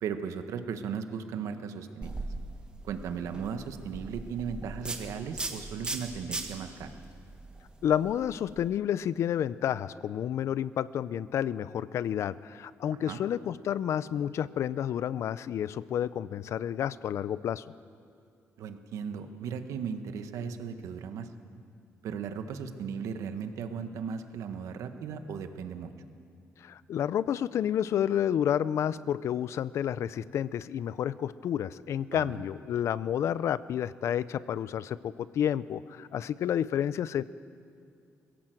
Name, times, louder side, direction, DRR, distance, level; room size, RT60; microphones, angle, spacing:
voice 1, 0.0-2.2 2.8-6.9 13.1-13.2 18.6-21.3 22.0-25.9 32.1-32.4, right 6 dB, 90° right, 8 dB, 1.4 m, -36 dB
sound 1, 2.0-8.6, right 2 dB, 15° right, 1.7 m, -39 dB
voice 2, 7.8-17.6 26.6-37.2, left 9 dB, 65° left, 17 dB, 0.5 m, -30 dB
22.0 x 16.5 x 7.8 m, 2.3 s
cardioid pair, 150°, 5 cm